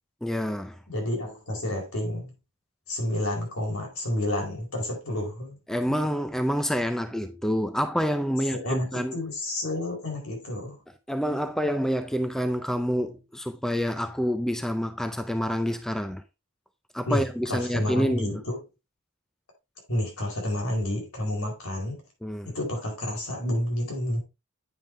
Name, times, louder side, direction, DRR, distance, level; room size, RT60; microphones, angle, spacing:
voice 1, 0.2-0.8 5.7-9.2 11.1-16.2 16.9-18.3 22.2-22.5, equal, ahead, 0.4 m, -27 dB
voice 2, 0.9-2.3 2.9-5.6 5.9-6.0 8.5-10.8 17.1-18.6 19.9-22.0 22.4-24.2, left 1 dB, 75° left, 4.4 m, -30 dB
9.1 x 5.5 x 3.4 m
head